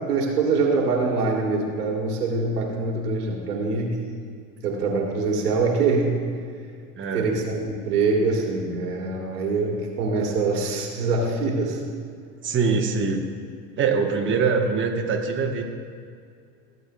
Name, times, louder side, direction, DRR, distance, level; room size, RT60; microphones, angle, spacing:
voice 1, 0.0-4.1 4.6-6.2 7.1-11.8, right 3 dB, 85° right, -1 dB, 1.7 m, -24 dB
voice 2, 7.0-7.3 12.4-13.3 13.8-15.6, right 5 dB, 25° right, 2 dB, 1.1 m, -23 dB
15.5 x 7.9 x 2.2 m, 2.2 s
hypercardioid pair, 75°, 45 cm